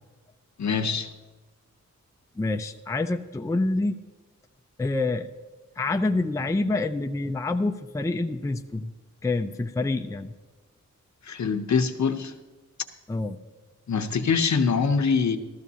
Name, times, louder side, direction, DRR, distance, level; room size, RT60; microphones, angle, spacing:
voice 1, 0.6-1.1 11.3-12.3 13.9-15.4, left 5 dB, 65° left, 8 dB, 0.8 m, -24 dB
voice 2, 2.4-4.0 4.8-5.3 5.8-8.9 9.2-10.3 13.1-13.4, left 2 dB, 10° left, 7 dB, 0.4 m, -27 dB
14.0 x 13.5 x 2.8 m, 1.2 s
wide cardioid pair, 75°, 31 cm